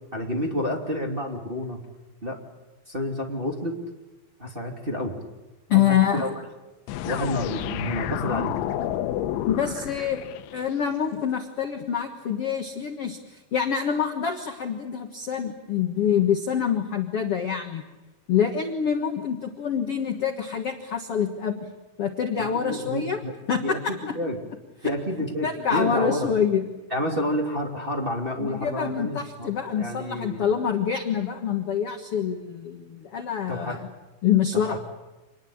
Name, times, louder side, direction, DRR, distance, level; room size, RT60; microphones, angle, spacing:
voice 1, 0.1-1.8 2.2-2.4 2.9-3.7 4.4-5.1 5.7-6.4 7.0-8.5 22.4-23.3 23.6-24.4 24.8-26.3 26.9-30.4 33.5-33.8 34.5-34.8, left 1 dB, 15° right, 0 dB, 2.3 m, -29 dB
voice 2, 5.7-6.3 9.5-10.2 10.5-17.8 18.3-21.7 22.0-23.2 23.5-23.9 24.8-24.9 25.4-26.7 28.4-33.9 34.2-34.8, left 8 dB, 70° left, 4 dB, 1.3 m, -26 dB
sound 1, 6.9-10.8, left 12 dB, 85° left, 3.3 m, -30 dB
27.0 x 20.5 x 8.7 m, 1.1 s
omnidirectional pair, 5.2 m